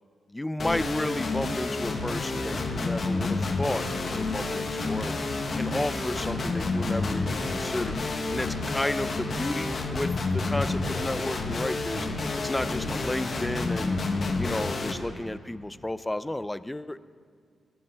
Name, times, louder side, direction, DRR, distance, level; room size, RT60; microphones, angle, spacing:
voice 1, 0.3-3.9 4.1-5.2 5.6-8.0 8.3-12.1 12.4-14.0 14.4-17.0, left 1 dB, 15° left, 15 dB, 0.4 m, -32 dB
sound 1, 0.6-14.9, left 3 dB, 50° left, 1.2 m, -29 dB
16.5 x 9.4 x 5.6 m, 2.2 s
cardioid pair, 85°, 0 cm